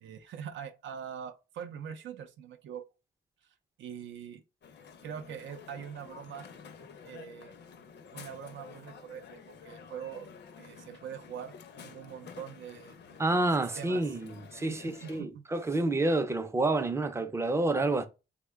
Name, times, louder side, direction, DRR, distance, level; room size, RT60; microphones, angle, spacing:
voice 1, 0.0-2.8 3.8-4.4 5.0-6.5 7.0-7.5 8.1-10.3 10.6-11.5 11.8-12.9 13.6-14.0 14.9-15.5, right 8 dB, 85° right, 0.4 m, -43 dB
Crowd, 4.6-15.2, left 6 dB, 65° left, 0.5 m, -50 dB
voice 2, 13.2-18.1, right 2 dB, 15° right, 0.4 m, -29 dB
3.6 x 2.1 x 3.3 m
wide cardioid pair, 145°, 19 cm